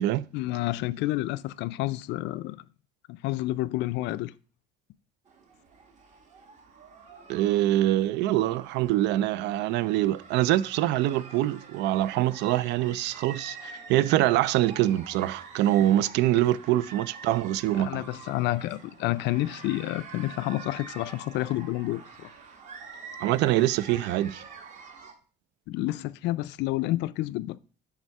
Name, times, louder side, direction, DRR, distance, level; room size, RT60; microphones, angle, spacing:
voice 1, 0.3-2.6 3.1-4.3 16.4-16.5 17.8-22.3 25.7-27.6, left 17 dB, 75° left, 0.4 m, -29 dB
sound 1, 5.3-25.1, right 5 dB, 40° right, 1.1 m, -46 dB
voice 2, 7.3-18.0 23.2-24.4, right 14 dB, 75° right, 0.4 m, -24 dB
9.0 x 3.6 x 5.4 m
cardioid pair, 180°, 18 cm